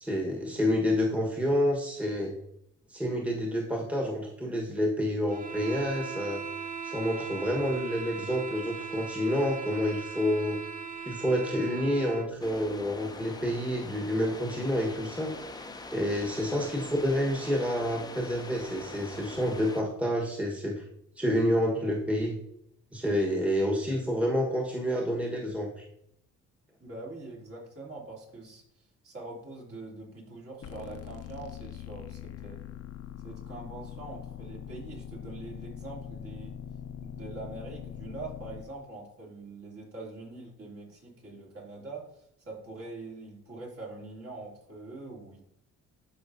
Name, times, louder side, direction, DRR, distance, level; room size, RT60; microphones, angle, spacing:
voice 1, 0.0-2.3 2.9-6.4 6.8-10.6 11.0-15.3 15.9-20.8 21.2-22.4 22.9-25.8, equal, 5° right, -1 dB, 1.4 m, -28 dB
sound 1, 5.3-12.3, right 6 dB, 25° right, 1.0 m, -39 dB
sound 2, 12.4-19.8, left 2 dB, 15° left, 0.7 m, -43 dB
voice 2, 26.8-28.6 29.0-32.6 33.2-36.6 37.0-45.4, right 2 dB, 50° right, -3 dB, 3.0 m, -43 dB
sound 3, 30.6-38.6, left 9 dB, 55° left, 0.8 m, -42 dB
12.5 x 4.9 x 2.7 m, 0.76 s
cardioid pair, 90°, 30 cm